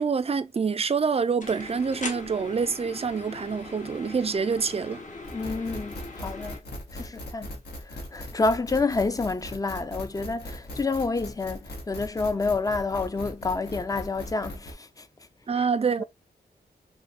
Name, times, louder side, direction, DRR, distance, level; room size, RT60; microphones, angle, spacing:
voice 1, 0.0-5.0 15.5-16.0, right 5 dB, 35° right, 0.4 m, -26 dB
sound 1, 1.4-6.6, left 2 dB, 45° left, 0.9 m, -40 dB
sound 2, 5.2-14.7, equal, 70° left, 1.3 m, -39 dB
voice 2, 5.3-6.6 6.9-7.5 7.8-15.1 15.5-15.6 16.0-16.1, left 3 dB, 20° left, 0.4 m, -29 dB
3.3 x 2.2 x 4.1 m
wide cardioid pair, 80°, 17 cm